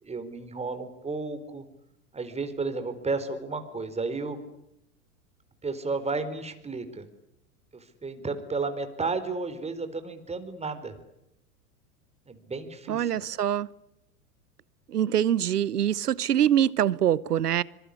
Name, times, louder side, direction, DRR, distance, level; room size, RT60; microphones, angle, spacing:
voice 1, 0.0-1.6 2.1-4.4 5.6-7.1 7.7-11.0 12.3-13.1, right 3 dB, 15° right, 4.2 m, -33 dB
voice 2, 12.9-13.7 14.9-17.6, right 10 dB, 85° right, 1.1 m, -24 dB
25.5 x 23.5 x 9.8 m
hypercardioid pair, 100°, 45 cm